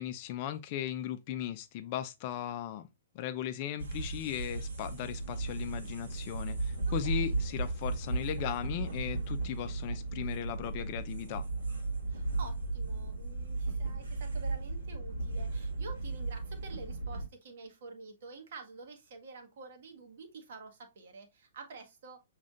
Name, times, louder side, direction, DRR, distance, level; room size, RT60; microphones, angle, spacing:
voice 1, 0.0-2.9 3.1-11.5, left 11 dB, 40° left, 0.5 m, -37 dB
sound 1, 3.8-17.3, right 3 dB, 75° right, 1.6 m, -35 dB
voice 2, 7.0-7.4 12.1-22.2, right 4 dB, 55° right, 1.2 m, -49 dB
6.2 x 3.2 x 2.5 m
figure-of-eight pair, 115°, 0 cm